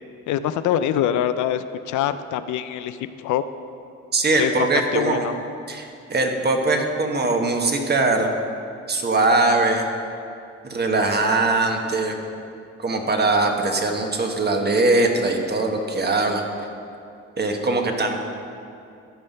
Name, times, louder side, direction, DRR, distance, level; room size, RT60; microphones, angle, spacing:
voice 1, 0.3-3.4 4.4-4.5 4.9-5.3, left 10 dB, 80° left, 11 dB, 0.5 m, -24 dB
voice 2, 4.1-5.2 5.7-8.3 8.9-9.9 10.6-12.1 12.8-16.4 17.4-18.2, right 2 dB, 35° right, 3 dB, 1.3 m, -21 dB
13.5 x 5.6 x 5.4 m, 2.5 s
cardioid pair, 90°, 30 cm